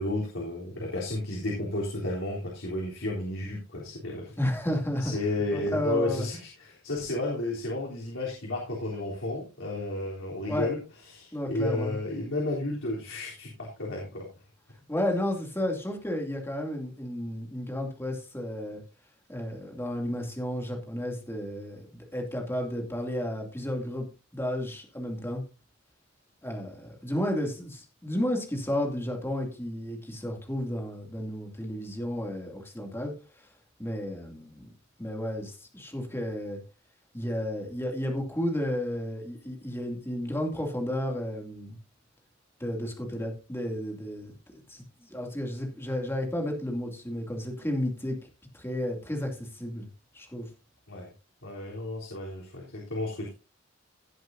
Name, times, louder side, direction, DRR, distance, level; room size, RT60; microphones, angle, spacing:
voice 1, 0.0-4.3 5.0-10.8 11.1-14.3 50.9-51.1 51.4-53.3, left 2 dB, 85° left, -3 dB, 3.6 m, -32 dB
voice 2, 4.4-5.1 5.5-6.3 10.5-10.7 11.3-12.0 14.9-18.8 19.3-24.1 24.3-25.4 26.4-33.5 33.8-34.7 35.0-36.6 37.1-41.8 42.6-44.3 44.7-48.2 48.5-49.9 50.1-50.5, left 1 dB, 10° left, 2 dB, 2.6 m, -32 dB
17.5 x 7.8 x 2.7 m, 0.31 s
head